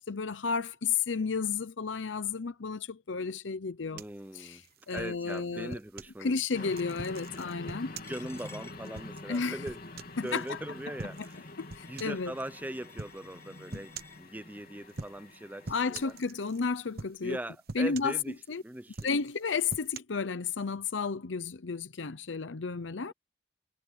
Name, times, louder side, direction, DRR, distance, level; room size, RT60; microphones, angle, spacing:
voice 1, 0.0-4.0 4.3-4.6 4.9-5.7 6.2-7.9 9.3-9.6 10.2-10.6 11.6-12.3 15.7-17.4 17.7-18.1 18.5-18.6 19.0-23.1, left 5 dB, 90° left, 0.8 m, -32 dB
voice 2, 3.9-4.6 4.9-6.7 7.5-7.7 8.1-11.5 11.9-16.1 17.2-19.1 23.1-23.2, right 1 dB, 10° right, 0.6 m, -41 dB
sound 1, 4.0-6.2 6.7-10.5 11.0-11.4 11.7-12.3 13.0-13.2 13.7-14.2 14.9-15.4 15.6-16.6 17.0-17.4 17.7-18.5 18.9-20.0, right 3 dB, 55° right, 1.0 m, -44 dB
sound 2, 6.5-16.2, left 2 dB, 55° left, 3.2 m, -46 dB
Coin (dropping), 8.0-14.2, left 3 dB, 15° left, 5.9 m, -57 dB
head